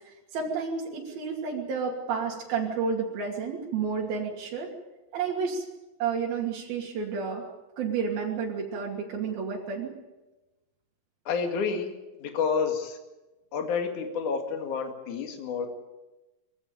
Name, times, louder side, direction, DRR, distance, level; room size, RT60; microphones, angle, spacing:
voice 1, 0.0-4.7 5.1-5.7 6.0-7.4 7.8-10.0, right 5 dB, 90° right, -2 dB, 4.5 m, -31 dB
voice 2, 11.3-11.9 12.2-13.0 13.5-15.7, left 5 dB, 60° left, 4 dB, 3.5 m, -29 dB
23.0 x 15.5 x 9.2 m, 1.1 s
omnidirectional pair, 4.1 m